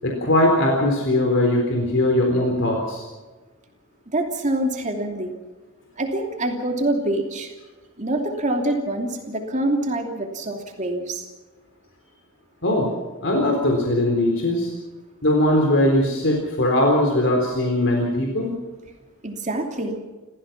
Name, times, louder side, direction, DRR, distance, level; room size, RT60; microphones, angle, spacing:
voice 1, 0.0-3.0 12.6-12.9 13.2-14.7 15.2-18.5, left 1 dB, 60° left, 1 dB, 3.9 m, -20 dB
voice 2, 4.1-5.3 6.0-7.5 8.0-11.3 19.2-20.0, right 1 dB, 35° right, 2 dB, 2.9 m, -25 dB
29.5 x 15.5 x 6.0 m, 1.3 s
head